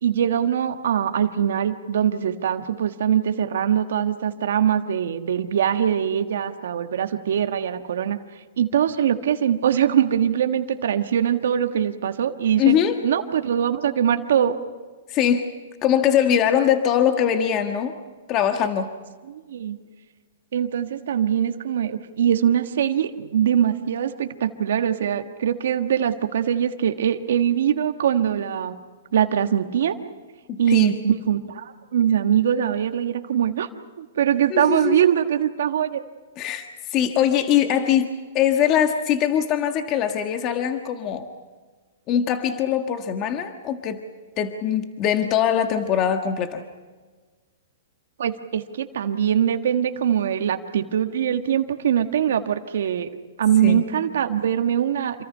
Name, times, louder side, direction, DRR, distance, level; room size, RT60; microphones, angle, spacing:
voice 1, 0.0-8.2 8.6-12.8 13.0-14.6 19.3-19.8 20.5-28.7 29.1-29.9 30.6-33.7 34.0-36.0 48.2-53.1 53.4-55.2, right 9 dB, 75° right, 7 dB, 1.5 m, -22 dB
voice 2, 12.6-13.0 15.1-15.5 15.8-17.9 18.3-18.9 30.5-30.9 34.5-35.0 36.4-38.1 38.3-41.3 42.1-44.0 44.4-46.6 53.6-53.8, left 9 dB, 35° left, 6 dB, 1.5 m, -22 dB
27.5 x 24.5 x 5.6 m, 1.4 s
hypercardioid pair, 135°, 0 cm